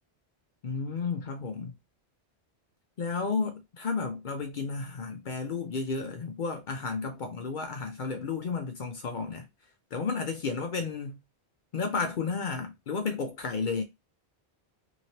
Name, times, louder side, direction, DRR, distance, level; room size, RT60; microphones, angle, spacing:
voice 1, 0.6-1.7 3.0-9.5 9.9-11.2 11.7-13.8, left 4 dB, 55° left, 0.6 m, -32 dB
2.9 x 2.7 x 2.8 m
omnidirectional pair, 1.1 m